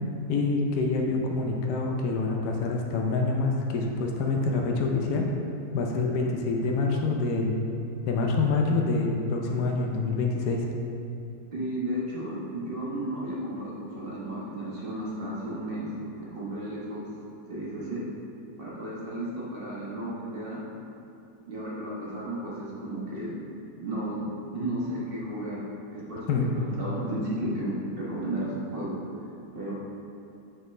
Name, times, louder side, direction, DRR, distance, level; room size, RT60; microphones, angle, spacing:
voice 1, 0.3-5.3 5.7-7.6 8.0-10.6 26.3-26.5, left 3 dB, 75° left, 0 dB, 1.2 m, -26 dB
voice 2, 11.5-15.9 16.2-17.1 17.5-18.0 18.6-20.6 21.4-23.3 23.8-25.7 25.9-29.0 29.5-29.7, right 1 dB, 35° right, -7 dB, 1.3 m, -33 dB
6.6 x 5.1 x 3.2 m, 2.8 s
omnidirectional pair, 1.8 m